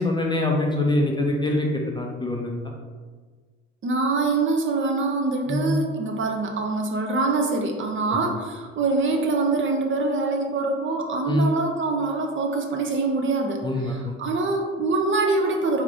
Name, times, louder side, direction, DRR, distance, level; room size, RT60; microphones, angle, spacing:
voice 1, 0.0-2.5 5.5-5.8 11.3-11.5 13.6-14.2, left 1 dB, 10° left, 0 dB, 0.5 m, -24 dB
voice 2, 3.8-15.8, right 3 dB, 35° right, 2 dB, 0.6 m, -24 dB
3.7 x 3.1 x 3.7 m, 1.5 s
figure-of-eight pair, 50°, 37 cm